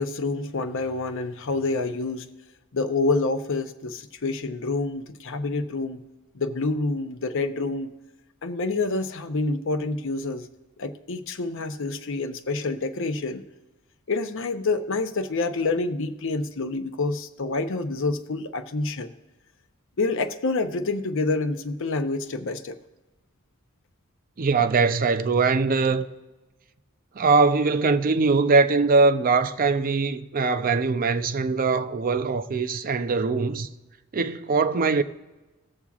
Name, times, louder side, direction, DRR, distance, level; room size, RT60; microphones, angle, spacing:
voice 1, 0.0-2.3 2.7-6.0 6.3-8.0 8.4-10.5 10.8-13.4 14.1-19.1 20.0-22.8, left 3 dB, 65° left, 0.7 m, -27 dB
voice 2, 24.4-26.1 27.2-33.7 34.1-35.0, right 4 dB, 40° right, 0.5 m, -22 dB
19.0 x 7.1 x 2.4 m
head